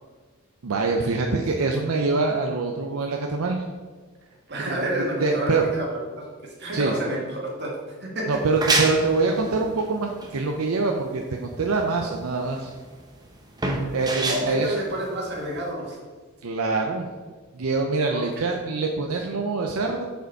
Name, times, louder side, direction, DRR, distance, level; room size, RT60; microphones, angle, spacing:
voice 1, 0.6-3.6 5.2-5.6 6.7-6.9 8.3-12.7 13.9-14.7 16.4-17.1 17.5-20.1, right 3 dB, 80° right, 2 dB, 0.6 m, -24 dB
voice 2, 4.5-8.3 14.2-16.0 18.1-18.5, right 1 dB, 50° right, -2 dB, 1.9 m, -30 dB
sound 1, 8.3-15.7, right 2 dB, 20° right, 0.8 m, -29 dB
6.7 x 5.2 x 4.6 m, 1.5 s
head